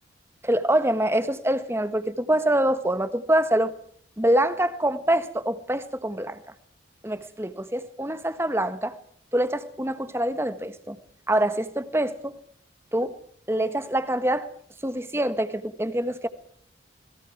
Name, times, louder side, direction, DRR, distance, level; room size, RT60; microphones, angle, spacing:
voice 1, 0.4-3.7 4.2-6.4 7.0-8.9 9.3-11.0 11.3-12.4 12.9-13.2 13.5-14.5 14.8-16.3, right 1 dB, 15° right, 1.4 m, -25 dB
28.5 x 21.5 x 4.7 m
head